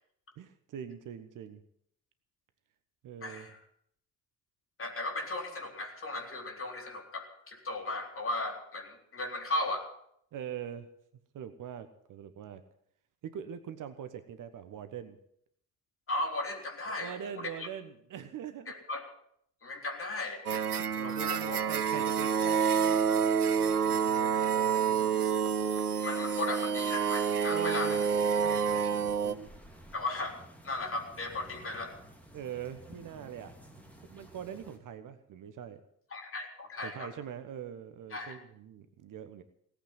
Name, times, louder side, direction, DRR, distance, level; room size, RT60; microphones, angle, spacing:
voice 1, 0.4-1.6 3.0-3.5 10.3-10.9 11.3-12.6 13.2-15.2 16.8-18.7 20.5-23.0 23.6-25.2 27.5-28.0 28.4-29.5 32.3-33.6 34.0-35.8 36.8-39.4, right 9 dB, 45° right, 11 dB, 1.3 m, -43 dB
voice 2, 3.2-3.6 4.8-9.9 16.1-17.5 18.7-19.0 19.6-20.4 21.0-21.6 26.0-28.0 29.9-30.3 30.6-32.0 36.1-37.1 38.1-38.4, left 2 dB, 30° left, 2 dB, 4.1 m, -36 dB
sound 1, 20.5-29.3, right 7 dB, 90° right, 0.5 m, -28 dB
sound 2, 27.8-34.8, right 1 dB, 5° left, 3.5 m, -53 dB
18.0 x 8.5 x 9.4 m, 0.70 s
figure-of-eight pair, 55°, 45 cm